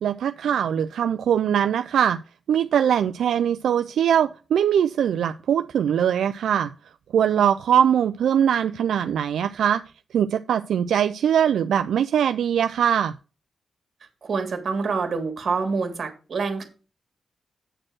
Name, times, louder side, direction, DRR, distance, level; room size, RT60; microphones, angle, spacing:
voice 1, 0.0-2.2 2.5-6.7 7.1-9.8 10.1-13.1, right 9 dB, 85° right, 10 dB, 0.3 m, -21 dB
voice 2, 14.2-16.6, right 4 dB, 55° right, 5 dB, 2.1 m, -26 dB
8.8 x 4.4 x 6.2 m, 0.35 s
cardioid pair, 100°, 0 cm